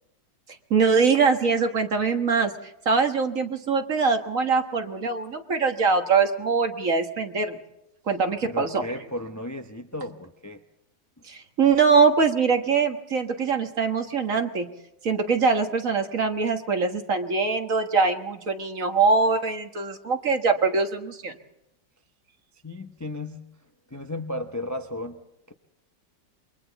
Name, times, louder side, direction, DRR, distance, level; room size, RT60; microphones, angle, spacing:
voice 1, 0.7-2.5 2.9-7.6 8.1-8.8 11.3-14.7 15.0-21.4, right 5 dB, 50° right, 5 dB, 1.8 m, -23 dB
voice 2, 8.4-10.6 22.6-23.5 23.9-25.2 25.5-25.6, left 1 dB, 20° left, 5 dB, 0.5 m, -34 dB
28.0 x 23.0 x 4.0 m, 0.88 s
omnidirectional pair, 1.9 m